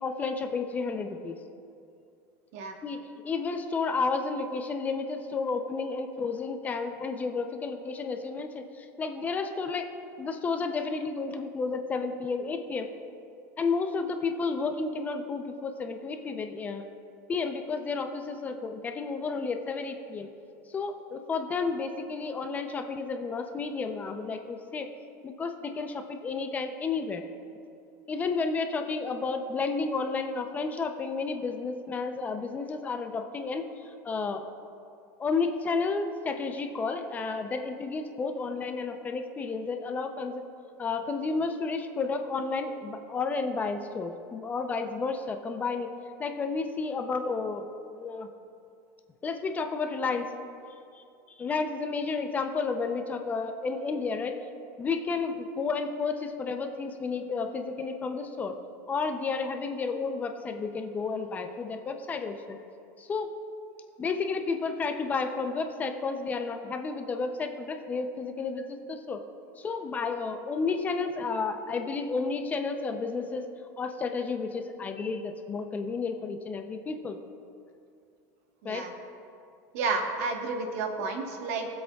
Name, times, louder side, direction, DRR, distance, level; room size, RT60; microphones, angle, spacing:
voice 1, 0.0-1.4 2.8-9.9 10.2-12.9 13.6-16.9 17.3-20.3 20.7-24.9 25.2-27.2 28.1-33.7 34.0-34.4 35.2-40.4 40.8-45.9 46.2-47.7 47.9-48.3 49.2-50.3 51.0-51.1 51.4-54.3 54.8-58.6 58.9-62.6 63.0-63.3 64.0-69.2 69.6-73.5 73.8-77.2 78.6-78.8, left 4 dB, 20° left, 6 dB, 0.6 m, -31 dB
voice 2, 79.7-81.7, right 4 dB, 70° right, 3 dB, 1.4 m, -31 dB
23.0 x 7.8 x 2.4 m, 2.5 s
supercardioid pair, 150°, 8 cm